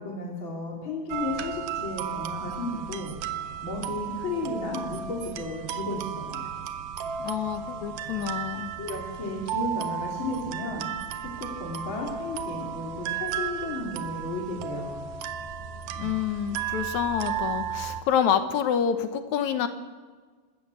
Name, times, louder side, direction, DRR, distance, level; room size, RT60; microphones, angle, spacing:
voice 1, 0.0-6.4 8.8-10.9 11.2-15.0, left 2 dB, 40° left, -1 dB, 3.4 m, -34 dB
sound 1, 1.1-18.0, right 8 dB, 85° right, 2.5 m, -34 dB
voice 2, 7.2-8.7 16.0-19.7, left 8 dB, 70° left, 9 dB, 2.3 m, -27 dB
25.0 x 14.0 x 8.3 m, 1.5 s
omnidirectional pair, 3.6 m